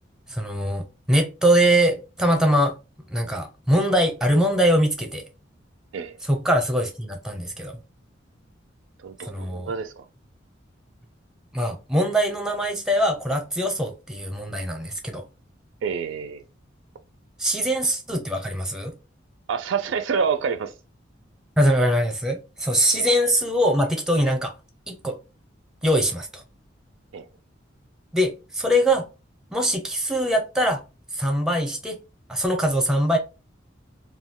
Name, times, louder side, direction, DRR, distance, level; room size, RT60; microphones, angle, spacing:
voice 1, 0.3-2.7 3.1-5.2 6.2-7.8 9.3-9.7 11.5-15.2 17.4-18.9 21.6-24.5 24.9-25.2 25.8-26.4 28.1-29.1 29.5-30.8 31.1-32.0 32.3-33.2, equal, 5° right, 0.6 m, -22 dB
voice 2, 9.0-10.0 15.8-16.4 19.5-20.7 22.9-23.1 27.1-27.2, right 6 dB, 70° right, 0.4 m, -27 dB
2.3 x 2.2 x 3.5 m
head